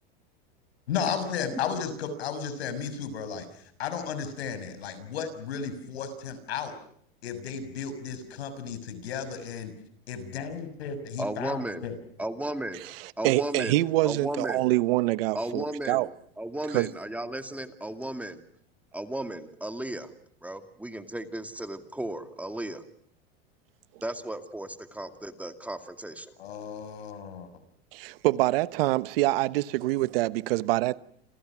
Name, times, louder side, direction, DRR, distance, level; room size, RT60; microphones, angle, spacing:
voice 1, 0.9-6.7 7.2-9.7 10.1-11.9 26.4-27.5, left 7 dB, 85° left, 6.3 m, -34 dB
voice 2, 11.2-11.8 12.2-12.8 13.2-14.6 15.3-16.1 16.4-18.4 18.9-20.1 20.4-22.8 24.0-26.3, right 1 dB, 5° right, 2.3 m, -35 dB
voice 3, 13.2-16.1 16.7-16.9 27.9-31.0, right 18 dB, 70° right, 1.2 m, -25 dB
28.5 x 28.5 x 6.2 m
supercardioid pair, 125°, 31 cm